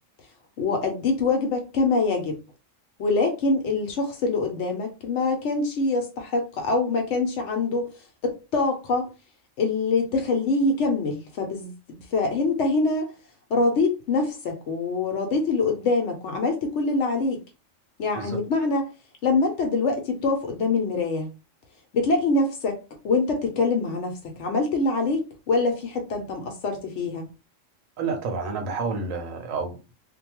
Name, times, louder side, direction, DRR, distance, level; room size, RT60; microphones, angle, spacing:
voice 1, 0.6-2.4 3.0-7.8 8.2-9.1 9.6-11.7 12.1-13.1 13.5-17.4 18.0-18.9 19.2-21.3 21.9-27.3, left 3 dB, 70° left, 0.9 m, -24 dB
voice 2, 28.0-29.9, right 4 dB, 85° right, 1.1 m, -29 dB
2.6 x 2.2 x 2.9 m
omnidirectional pair, 1.4 m